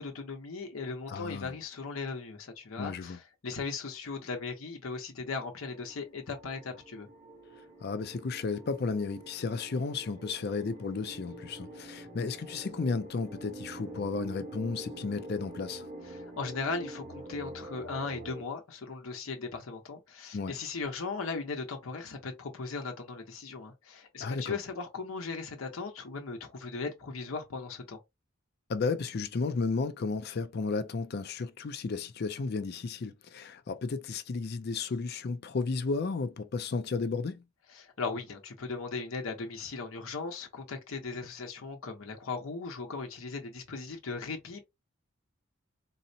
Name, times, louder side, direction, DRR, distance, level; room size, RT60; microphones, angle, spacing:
voice 1, 0.0-7.1 16.1-28.0 37.7-44.6, left 4 dB, 85° left, 0.8 m, -38 dB
voice 2, 1.1-1.5 2.8-3.2 7.8-15.9 20.3-20.5 24.2-24.6 28.7-37.4, left 4 dB, 50° left, 0.4 m, -33 dB
sound 1, 5.6-18.4, right 1 dB, 45° right, 1.0 m, -46 dB
3.9 x 2.1 x 2.6 m
head